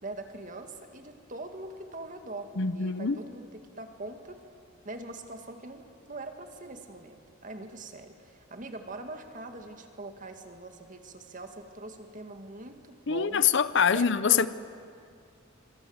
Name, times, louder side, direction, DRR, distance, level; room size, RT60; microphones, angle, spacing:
voice 1, 0.0-4.4 4.8-13.4 13.9-14.5, right 2 dB, 40° right, 2.1 m, -42 dB
voice 2, 2.6-3.2 13.1-14.5, left 7 dB, 60° left, 0.8 m, -24 dB
26.0 x 25.5 x 8.1 m
head